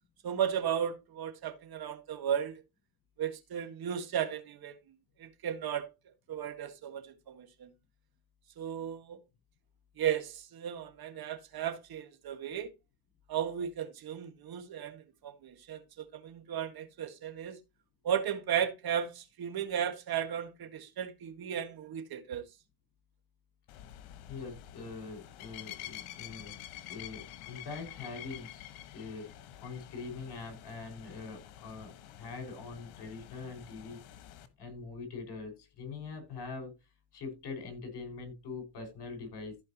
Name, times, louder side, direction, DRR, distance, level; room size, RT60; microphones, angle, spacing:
voice 1, 0.2-2.6 3.2-4.8 5.2-5.9 6.3-7.7 8.6-9.2 10.0-12.7 13.3-17.6 18.0-22.4, right 9 dB, 50° right, 1.9 m, -35 dB
sound 1, 23.7-34.5, left 12 dB, 85° left, 1.5 m, -48 dB
voice 2, 24.3-26.5 26.8-28.6 28.9-29.3 29.6-34.0 34.6-36.7 37.1-39.6, left 4 dB, 55° left, 5.6 m, -43 dB
15.0 x 5.2 x 2.9 m
cardioid pair, 105°, 48 cm